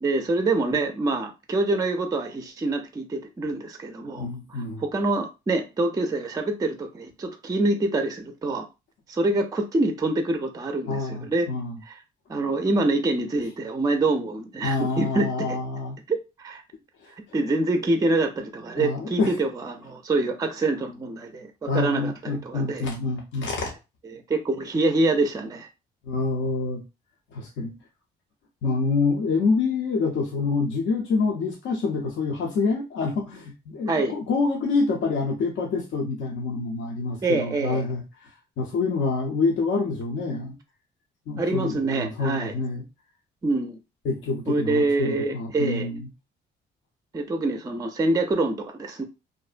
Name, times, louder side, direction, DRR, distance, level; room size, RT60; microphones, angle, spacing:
voice 1, 0.0-8.7 9.1-11.5 11.9-12.0 12.3-15.6 16.1-16.6 17.3-22.9 24.1-25.7 33.9-34.2 37.2-37.8 41.4-42.6 43.4-43.8 44.5-45.9 47.1-49.0, right 2 dB, 20° right, 0.4 m, -26 dB
voice 2, 4.1-4.8 10.9-11.8 14.6-16.0 17.0-17.1 18.8-19.3 21.7-23.8 26.0-26.8 27.3-27.7 28.6-38.3 38.6-40.6 41.3-42.8 44.0-46.1, left 4 dB, 70° left, 0.6 m, -27 dB
2.5 x 2.1 x 2.4 m
cardioid pair, 90°, 20 cm